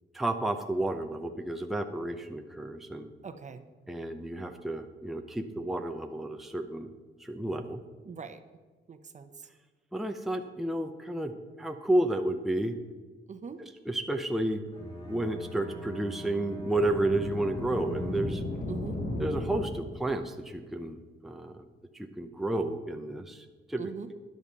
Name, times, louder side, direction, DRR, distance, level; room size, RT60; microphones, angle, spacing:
voice 1, 0.1-3.1 3.9-6.9 7.2-7.8 9.9-12.8 13.8-14.6 15.0-18.4 19.2-21.5 21.9-23.8, right 1 dB, ahead, 5 dB, 0.7 m, -31 dB
voice 2, 3.2-3.6 8.0-8.4 8.9-9.3 13.3-13.6 18.7-19.0 23.8-24.1, right 5 dB, 40° right, 9 dB, 0.9 m, -41 dB
Bowed string instrument, 14.7-18.7, left 1 dB, 30° left, 2.9 m, -45 dB
sound 1, 16.5-20.2, left 1 dB, 50° left, 2.5 m, -36 dB
12.5 x 10.5 x 4.2 m, 1.3 s
cardioid pair, 125°, 19 cm